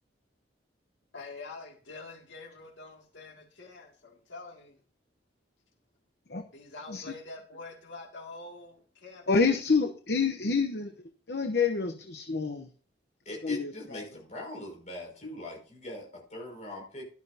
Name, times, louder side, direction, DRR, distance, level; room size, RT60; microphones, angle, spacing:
voice 1, 1.1-4.8 6.5-9.5, left 3 dB, 85° left, 1 dB, 2.4 m, -46 dB
voice 2, 9.3-10.9 11.3-12.7 13.4-14.0, left 4 dB, 60° left, 6 dB, 0.9 m, -27 dB
voice 3, 13.2-17.0, left 1 dB, 40° left, -1 dB, 5.9 m, -41 dB
13.0 x 12.0 x 2.8 m, 0.41 s
head